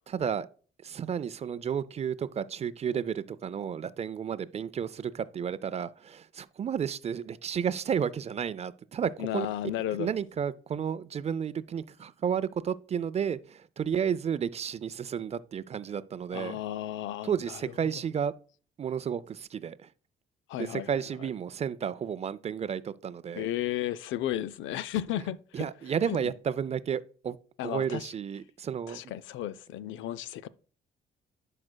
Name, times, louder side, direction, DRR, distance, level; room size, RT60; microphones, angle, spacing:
voice 1, 0.1-0.5 0.8-9.5 10.0-16.6 17.2-18.3 18.8-19.9 20.6-23.5 25.5-27.4 27.6-29.0, right 7 dB, 35° right, 0.4 m, -32 dB
voice 2, 9.2-10.1 16.3-17.6 20.5-20.9 23.3-25.7 26.1-26.2 27.6-28.1 28.9-30.5, left 12 dB, 75° left, 0.4 m, -33 dB
11.0 x 4.9 x 2.2 m
cardioid pair, 90°, 20 cm